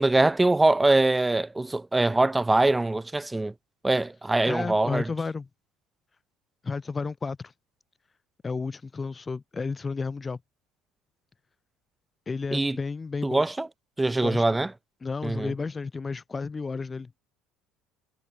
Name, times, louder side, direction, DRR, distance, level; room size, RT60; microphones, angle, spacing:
voice 1, 0.0-3.5 3.8-5.0 12.5-12.8 13.2-13.7 14.0-14.7 15.2-15.5, right 2 dB, 10° right, 1.6 m, -23 dB
voice 2, 4.4-5.5 6.6-7.5 8.4-10.4 12.3-13.4 14.2-14.6 15.0-17.1, left 4 dB, 20° left, 7.3 m, -32 dB
cardioid pair, 125°, 0 cm